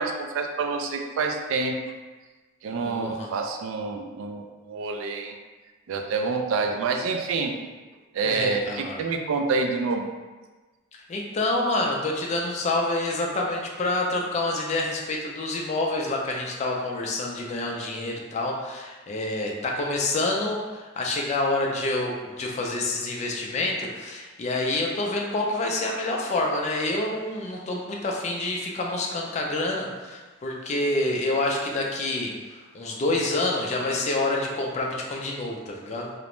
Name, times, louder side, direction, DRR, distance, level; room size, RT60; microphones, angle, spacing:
voice 1, 0.0-1.8 2.6-5.4 5.9-7.5 8.1-10.1, right 4 dB, 70° right, 4 dB, 0.3 m, -27 dB
voice 2, 2.8-3.3 8.2-9.0 11.1-36.1, left 2 dB, 35° left, -1 dB, 0.3 m, -27 dB
2.4 x 2.1 x 2.9 m, 1.3 s
head